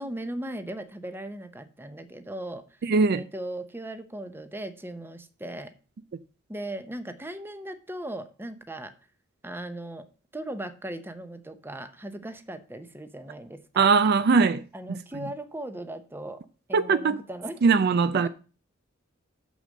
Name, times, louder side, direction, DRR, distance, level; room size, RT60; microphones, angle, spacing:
voice 1, 0.0-2.6 3.1-5.7 6.5-8.9 9.4-10.1 10.3-13.9 14.7-16.4 16.7-17.6 18.1-18.3, right 1 dB, 10° right, 0.8 m, -38 dB
voice 2, 2.8-3.2 13.8-15.3 16.7-17.2 17.6-18.3, right 4 dB, 50° right, 0.4 m, -21 dB
6.7 x 6.3 x 6.4 m
head